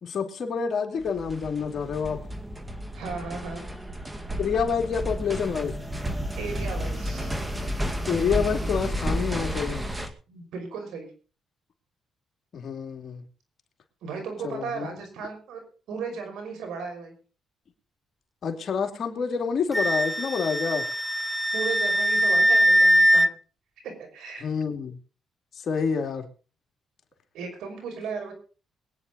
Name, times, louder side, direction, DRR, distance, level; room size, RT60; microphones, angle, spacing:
voice 1, 0.0-2.2 4.4-5.7 8.1-9.8 12.5-13.2 14.4-14.9 18.4-20.9 24.4-25.0 25.6-26.3, left 6 dB, 55° left, 4 dB, 2.5 m, -28 dB
sound 1, 1.0-10.1, equal, 15° right, 2.1 m, -32 dB
voice 2, 2.9-3.6 6.4-7.3 10.3-11.1 14.0-15.6 15.9-17.1 21.5-23.3 23.8-24.4 27.3-28.3, right 5 dB, 80° right, 4 dB, 5.7 m, -35 dB
Wind instrument woodwind instrument, 19.7-23.3, equal, ahead, 0.5 m, -21 dB
22.5 x 9.5 x 4.0 m, 0.36 s
cardioid pair, 90°, 0 cm